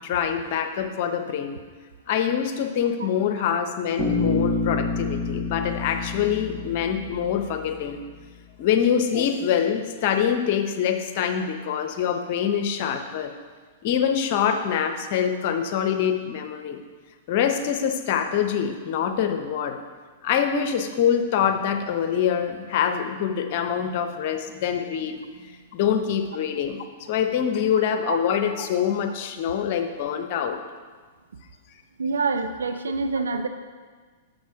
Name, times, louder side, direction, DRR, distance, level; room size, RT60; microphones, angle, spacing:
voice 1, 0.0-1.6 2.1-8.0 8.6-13.3 13.8-16.8 17.3-19.8 20.2-30.6, left 8 dB, 50° left, 7 dB, 0.8 m, -25 dB
Bass guitar, 4.0-7.9, left 3 dB, 10° right, 2.4 m, -28 dB
voice 2, 32.0-33.5, right 4 dB, 80° right, 8 dB, 0.6 m, -26 dB
6.5 x 6.5 x 4.8 m, 1.5 s
hypercardioid pair, 110°, 0 cm